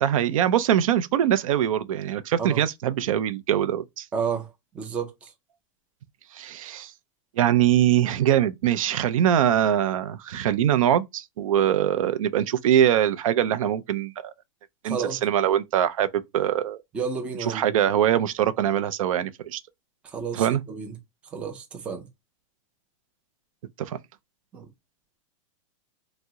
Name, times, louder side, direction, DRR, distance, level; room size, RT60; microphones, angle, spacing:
voice 1, 0.0-4.1 6.3-6.9 7.4-14.3 14.8-16.8 17.5-19.6 20.3-20.6 23.8-24.0, right 10 dB, 85° right, 0.5 m, -23 dB
voice 2, 4.1-5.3 14.8-15.2 16.9-17.7 20.0-21.0 21.3-22.1 24.5-24.7, right 6 dB, 5° right, 0.3 m, -31 dB
2.7 x 2.0 x 3.5 m
supercardioid pair, 170°, 17 cm